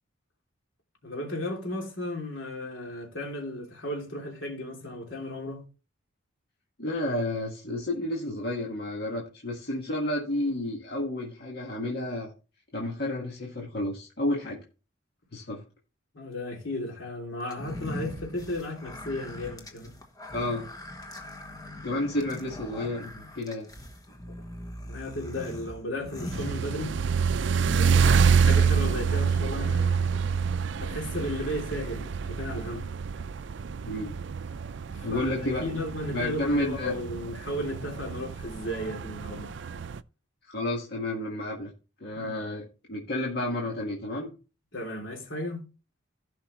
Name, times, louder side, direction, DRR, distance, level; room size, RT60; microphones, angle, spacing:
voice 1, 1.0-5.6 16.1-20.0 24.9-27.0 27.6-30.0 30.8-32.9 34.9-39.5 42.1-42.4 44.7-45.6, left 1 dB, 70° left, 3.0 m, -35 dB
voice 2, 6.8-12.3 12.7-14.6 15.3-15.6 20.3-20.7 21.8-23.7 33.8-34.1 35.0-35.6 36.1-36.9 40.5-41.7 42.0-44.3, left 1 dB, 50° left, 1.8 m, -31 dB
sound 1, 17.5-27.2, left 1 dB, 20° left, 1.2 m, -41 dB
sound 2, 26.3-40.0, right 6 dB, 60° right, 0.4 m, -27 dB
15.5 x 5.6 x 3.1 m
head